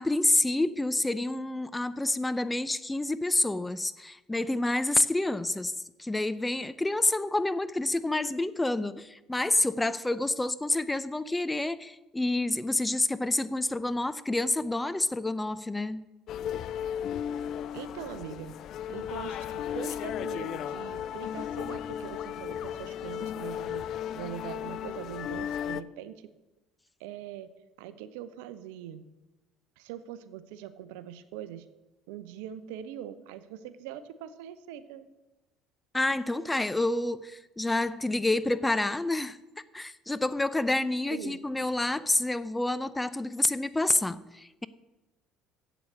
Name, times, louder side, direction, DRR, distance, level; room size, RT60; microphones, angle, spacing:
voice 1, 0.0-5.7 6.0-16.0 35.9-39.4 39.7-44.7, left 2 dB, 10° left, 0.6 m, -28 dB
sound 1, 16.3-25.8, left 9 dB, 55° left, 0.4 m, -35 dB
voice 2, 17.7-18.5 18.9-23.8 24.1-26.3 27.0-27.5 27.8-29.0 29.8-31.7 32.1-35.1 41.1-41.4, right 10 dB, 75° right, 0.7 m, -42 dB
8.0 x 7.1 x 8.5 m
hypercardioid pair, 65°, 0 cm